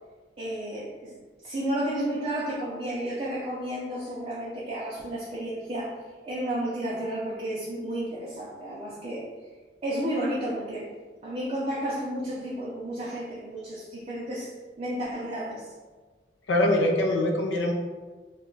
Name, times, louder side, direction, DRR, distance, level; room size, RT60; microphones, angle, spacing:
voice 1, 0.4-1.2 1.4-9.3 9.8-10.9 11.2-14.5 14.8-15.7, right 1 dB, 35° right, -7 dB, 0.4 m, -32 dB
voice 2, 16.5-17.7, left 1 dB, 90° left, 2 dB, 0.5 m, -23 dB
2.3 x 2.1 x 3.7 m, 1.3 s
head